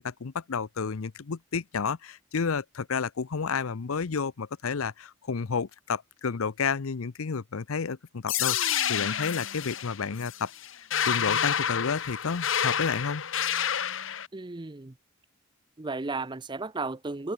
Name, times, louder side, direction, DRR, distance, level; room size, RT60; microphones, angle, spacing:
voice 1, 0.0-10.5 10.8-13.3, left 5 dB, 85° left, 0.7 m, -31 dB
sound 1, 8.3-14.3, left 9 dB, 65° left, 1.1 m, -29 dB
voice 2, 14.3-14.9 15.8-17.3, right 3 dB, 20° right, 0.6 m, -34 dB
head